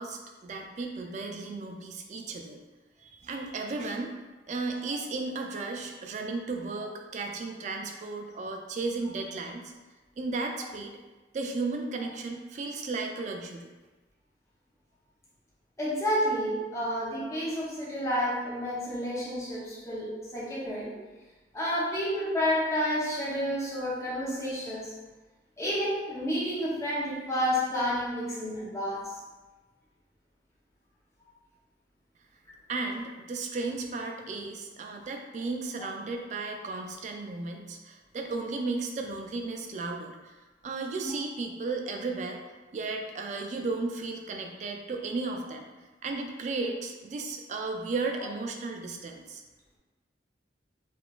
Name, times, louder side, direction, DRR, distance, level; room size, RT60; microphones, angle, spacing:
voice 1, 0.0-2.6 3.2-4.1 4.5-9.6 10.2-10.9 11.3-13.7 32.7-40.4 40.6-42.4 42.7-45.7 46.0-49.4, right 3 dB, 40° right, 2 dB, 0.3 m, -34 dB
voice 2, 15.8-20.9 21.5-24.9 25.6-29.1 41.0-41.1, equal, 15° left, -7 dB, 0.7 m, -30 dB
3.7 x 2.4 x 2.3 m, 1.2 s
head